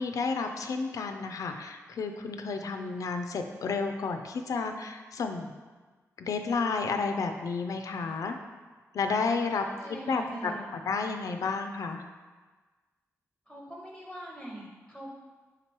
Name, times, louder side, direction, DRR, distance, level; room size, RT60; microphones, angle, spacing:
voice 1, 0.0-5.5 6.2-8.4 8.9-12.0, left 4 dB, 75° left, 6 dB, 0.3 m, -31 dB
voice 2, 9.7-10.7 13.5-15.1, right 1 dB, 5° right, -3 dB, 0.6 m, -42 dB
3.7 x 2.9 x 4.5 m, 1.3 s
cardioid pair, 80°, 6 cm